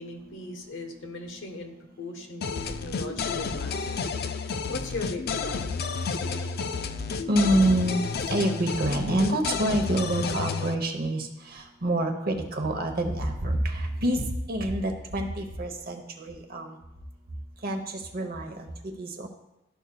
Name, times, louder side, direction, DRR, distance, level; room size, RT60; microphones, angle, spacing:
voice 1, 0.0-4.1 4.3-5.6, left 2 dB, 70° left, 3 dB, 1.1 m, -38 dB
sound 1, 2.4-10.7, left 5 dB, 50° left, 0.4 m, -31 dB
voice 2, 7.3-16.8 17.6-18.7 19.0-19.3, right 1 dB, 50° right, 4 dB, 0.8 m, -27 dB
12.0 x 5.3 x 2.2 m, 0.94 s
head